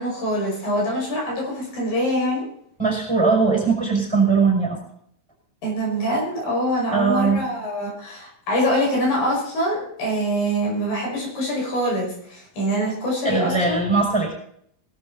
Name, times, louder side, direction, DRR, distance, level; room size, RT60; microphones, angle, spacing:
voice 1, 0.0-2.5 5.6-13.8, equal, 75° left, -1 dB, 7.5 m, -24 dB
voice 2, 2.8-4.8 6.9-7.4 13.2-14.3, right 4 dB, 5° right, -1 dB, 6.0 m, -20 dB
20.5 x 12.5 x 4.1 m, 0.69 s
omnidirectional pair, 4.1 m